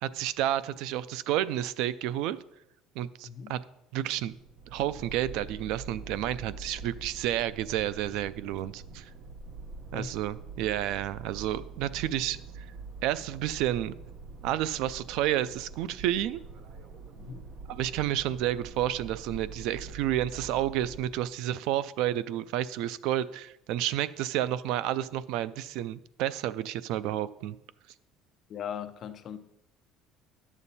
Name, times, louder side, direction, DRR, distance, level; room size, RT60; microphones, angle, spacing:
voice 1, 0.0-2.4 3.0-3.6 3.9-4.3 4.7-9.1 9.9-12.7 13.0-13.9 14.4-16.4 17.7-27.6, right 12 dB, 65° right, 0.3 m, -30 dB
sound 1, 4.3-21.3, right 4 dB, 40° right, 0.7 m, -45 dB
voice 2, 28.5-29.4, left 8 dB, 35° left, 0.5 m, -39 dB
11.0 x 7.1 x 4.1 m
cardioid pair, 175°, 0 cm